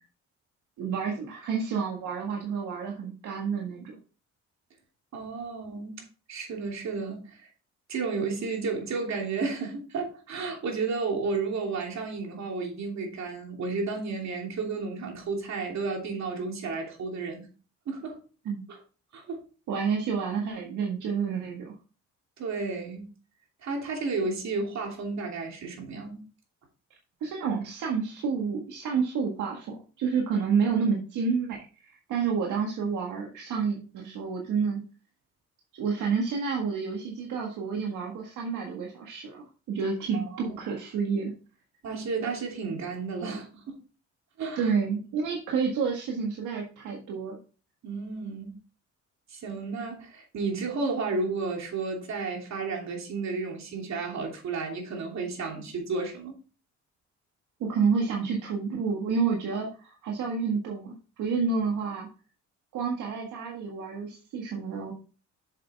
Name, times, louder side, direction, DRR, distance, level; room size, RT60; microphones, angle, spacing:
voice 1, 0.8-4.0 18.4-18.6 19.7-21.7 27.2-31.6 31.8-34.8 35.7-41.3 44.5-47.4 57.6-62.1 62.7-64.9, right 5 dB, 80° right, 1.7 m, -29 dB
voice 2, 5.1-7.5 7.9-17.5 17.9-18.2 18.7-18.8 19.1-19.4 22.4-23.1 23.6-26.2 40.1-40.5 41.8-43.8 44.4-44.7 47.8-48.5 49.3-56.4, right 4 dB, 65° right, 3.0 m, -32 dB
7.5 x 6.9 x 3.5 m
cardioid pair, 90°, 30 cm